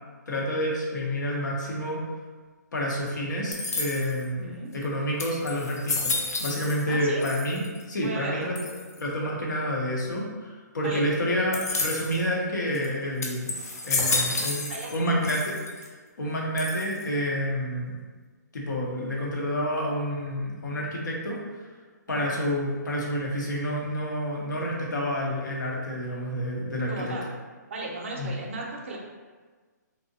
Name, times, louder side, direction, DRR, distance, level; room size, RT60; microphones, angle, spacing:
voice 1, 0.3-2.0 2.7-7.6 7.9-8.6 9.0-13.5 13.8-15.8 16.2-18.0 18.5-21.4 22.1-27.2 28.2-28.3, equal, 80° left, -3 dB, 0.7 m, -29 dB
sound 1, 3.5-4.3 4.8-4.9 5.2-6.9 7.2-7.8 8.6-9.0 11.5-12.2 12.7-12.9 13.2-15.0 15.2-15.9 16.6-17.1, left 3 dB, 60° left, 0.4 m, -30 dB
voice 2, 6.9-7.2 8.0-8.5 10.8-11.1 14.1-14.3 14.7-14.9 22.1-22.3 26.9-27.3 27.7-29.0, right 2 dB, 40° right, -2 dB, 0.4 m, -35 dB
2.6 x 2.0 x 2.6 m, 1.4 s
hypercardioid pair, 170°, 10 cm